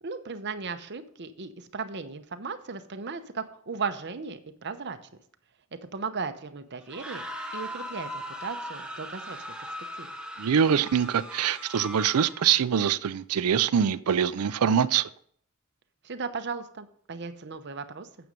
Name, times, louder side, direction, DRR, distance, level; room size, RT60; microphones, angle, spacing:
voice 1, 0.0-5.0 5.9-7.2 7.5-9.4 10.0-10.1 16.0-18.1, right 5 dB, 50° right, 0.8 m, -36 dB
sound 1, 6.8-12.6, equal, 5° right, 0.9 m, -39 dB
voice 2, 10.4-15.1, right 8 dB, 80° right, 0.4 m, -24 dB
9.2 x 7.0 x 5.3 m
head